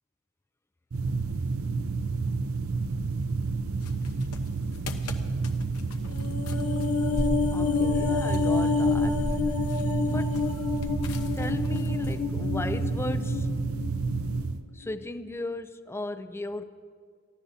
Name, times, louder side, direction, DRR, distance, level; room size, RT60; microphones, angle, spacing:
sound 1, 0.9-14.6, right 4 dB, 65° right, 0.7 m, -30 dB
sound 2, 3.8-12.2, left 1 dB, 85° left, 1.0 m, -38 dB
sound 3, 6.1-14.5 14.8-15.0, left 4 dB, 70° left, 0.8 m, -29 dB
voice 1, 7.5-9.3 10.1-10.4 11.2-13.7 14.7-16.6, left 2 dB, 10° left, 0.4 m, -36 dB
29.0 x 14.5 x 2.7 m
head